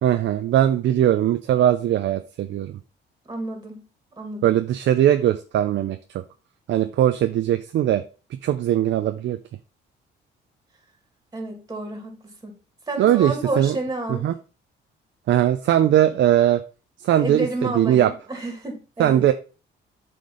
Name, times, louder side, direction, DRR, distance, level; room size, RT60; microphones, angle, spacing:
voice 1, 0.0-2.7 4.4-6.0 6.7-8.0 8.4-9.4 13.0-13.8 14.2-14.3 15.3-16.6 17.0-18.1 19.0-19.3, right 11 dB, 70° right, 0.6 m, -20 dB
voice 2, 3.3-3.8 4.2-4.6 11.3-12.5 12.9-14.3 17.1-19.3, right 2 dB, 20° right, 2.3 m, -30 dB
7.8 x 3.4 x 5.5 m
cardioid pair, 90°, 20 cm